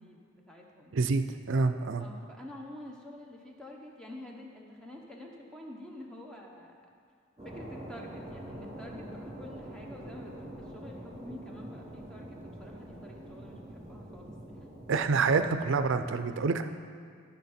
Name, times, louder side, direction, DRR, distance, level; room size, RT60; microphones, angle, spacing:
voice 1, 0.0-1.0 2.0-6.9 7.4-14.8, left 1 dB, 5° left, -1 dB, 1.0 m, -48 dB
voice 2, 0.9-2.1 14.9-16.6, right 4 dB, 60° right, 9 dB, 0.5 m, -27 dB
sound 1, 7.4-16.1, right 1 dB, 20° right, 2.7 m, -45 dB
13.5 x 5.6 x 4.3 m, 2.1 s
head